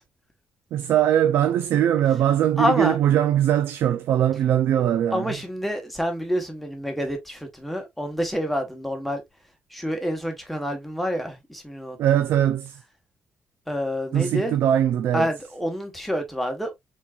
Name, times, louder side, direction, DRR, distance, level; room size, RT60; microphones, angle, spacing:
voice 1, 0.7-5.3 12.0-12.8 14.1-15.3, right 11 dB, 80° right, 0.4 m, -21 dB
voice 2, 2.6-3.0 5.1-9.2 9.7-12.0 13.7-14.5 15.1-16.8, equal, ahead, 1.2 m, -27 dB
4.5 x 4.0 x 2.4 m
cardioid pair, 150°, 4 cm